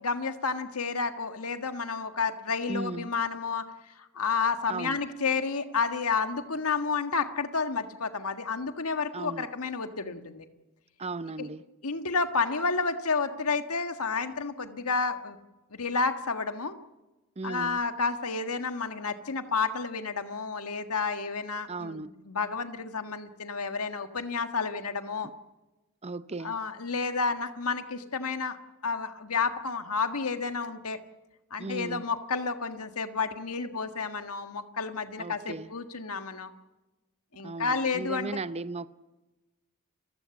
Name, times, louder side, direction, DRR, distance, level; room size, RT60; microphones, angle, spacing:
voice 1, 0.0-3.7 4.0-10.4 11.4-11.5 11.8-15.4 15.7-16.8 17.4-25.3 26.4-28.6 28.8-31.0 31.5-36.5 37.3-38.4, left 4 dB, 85° left, 1.7 m, -30 dB
voice 2, 2.7-3.1 4.7-5.0 9.1-9.5 11.0-11.6 17.4-17.8 21.7-22.1 26.0-26.6 31.6-32.1 35.2-35.7 37.4-38.9, right 3 dB, 30° right, 0.7 m, -36 dB
29.5 x 15.5 x 7.1 m
head